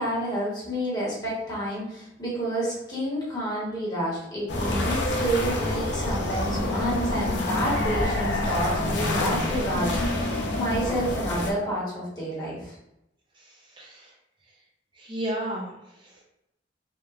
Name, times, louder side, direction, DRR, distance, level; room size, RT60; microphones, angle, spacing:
voice 1, 0.0-12.8, equal, 20° left, -7 dB, 0.9 m, -29 dB
sound 1, 4.5-11.5, left 1 dB, 80° left, 0.5 m, -27 dB
voice 2, 13.4-14.1 15.0-16.2, right 1 dB, 25° right, -2 dB, 0.6 m, -34 dB
2.9 x 2.1 x 2.3 m, 0.83 s
head